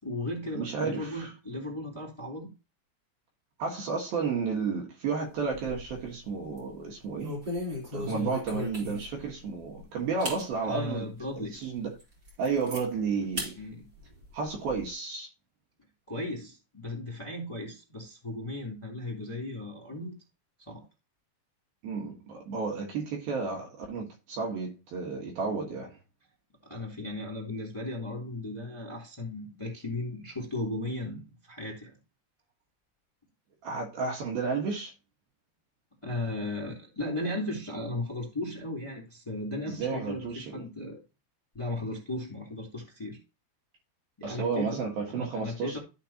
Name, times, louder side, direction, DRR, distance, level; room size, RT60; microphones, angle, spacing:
voice 1, 0.0-2.5 8.0-8.3 10.6-11.5 13.6-13.8 16.1-20.2 20.7-20.8 26.6-31.9 36.0-41.0 41.5-43.2 44.2-44.7 45.1-45.8, left 2 dB, 10° left, 2.1 m, -36 dB
voice 2, 0.6-1.3 3.6-7.4 7.9-12.0 12.4-13.6 14.3-15.3 21.8-26.0 33.6-34.9 39.7-40.6 44.2-45.8, right 5 dB, 60° right, 2.9 m, -32 dB
sound 1, 5.4-6.1 6.4-6.7 7.2-9.3 9.7-9.8 10.2-10.4 11.0-11.1 11.6-11.7 12.0-12.8 13.4-13.5 13.9-14.8, left 1 dB, 25° right, 3.7 m, -37 dB
15.0 x 5.1 x 2.9 m
omnidirectional pair, 5.5 m